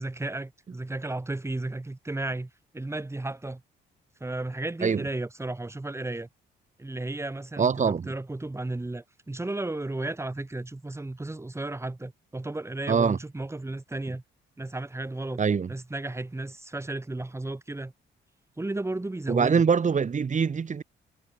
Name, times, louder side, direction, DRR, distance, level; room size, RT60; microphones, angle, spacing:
voice 1, 0.0-3.6 4.2-6.3 6.8-14.2 14.6-15.4 15.7-17.9 18.6-19.7, right 2 dB, 15° right, 3.4 m, -34 dB
voice 2, 7.6-8.1 12.9-13.2 15.4-15.7 19.3-20.8, right 6 dB, 40° right, 2.1 m, -23 dB
cardioid pair, 90°, 20 cm